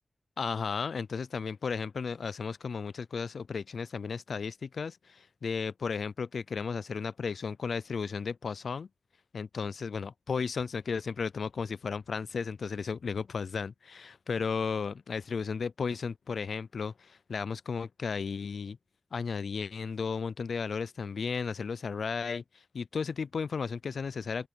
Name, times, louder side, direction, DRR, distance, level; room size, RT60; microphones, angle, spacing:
voice 1, 0.4-8.9 9.3-18.8 19.1-22.4 22.7-24.5, left 5 dB, 80° left, 0.4 m, -34 dB
open air
wide cardioid pair, 100°, 0 cm